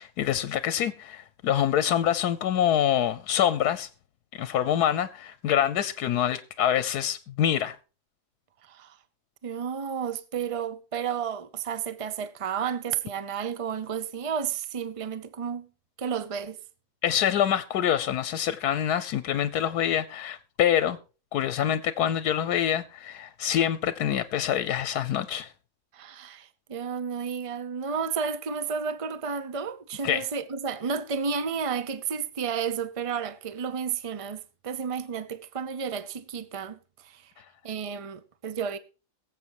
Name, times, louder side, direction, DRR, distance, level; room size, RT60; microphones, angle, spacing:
voice 1, 0.0-3.9 4.3-7.8 17.0-21.0 21.3-25.5 30.0-30.2, left 10 dB, 85° left, 1.3 m, -26 dB
voice 2, 8.6-9.0 9.4-15.7 16.0-16.6 25.9-37.3 37.6-38.8, right 6 dB, 55° right, 0.3 m, -32 dB
22.5 x 7.6 x 3.0 m
omnidirectional pair, 1.6 m